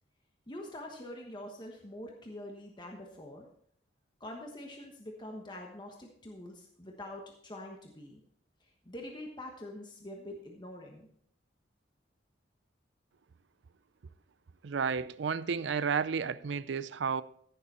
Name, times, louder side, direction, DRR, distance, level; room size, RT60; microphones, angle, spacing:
voice 1, 0.5-3.5 4.2-8.2 8.6-11.1, left 1 dB, 25° left, 1.2 m, -45 dB
voice 2, 14.6-17.2, right 6 dB, 70° right, 0.5 m, -32 dB
15.0 x 6.9 x 4.2 m
head